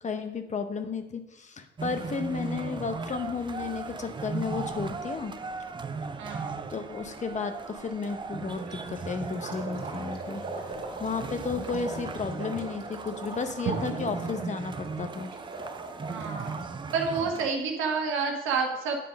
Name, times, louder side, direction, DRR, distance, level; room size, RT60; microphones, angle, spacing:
voice 1, 0.0-5.3 6.7-10.4 11.0-15.3, left 5 dB, 35° left, 8 dB, 0.8 m, -33 dB
sound 1, 1.8-17.5, right 4 dB, 25° right, 0.5 m, -38 dB
voice 2, 6.2-6.6 16.1-16.6 16.9-19.0, right 5 dB, 90° right, 2 dB, 1.4 m, -29 dB
sound 2, 8.6-16.6, right 2 dB, 45° right, 2.2 m, -41 dB
sound 3, 9.3-11.1 13.7-14.6, right 7 dB, 70° right, 0.9 m, -38 dB
9.2 x 3.8 x 5.1 m, 0.93 s
cardioid pair, 90°, 20 cm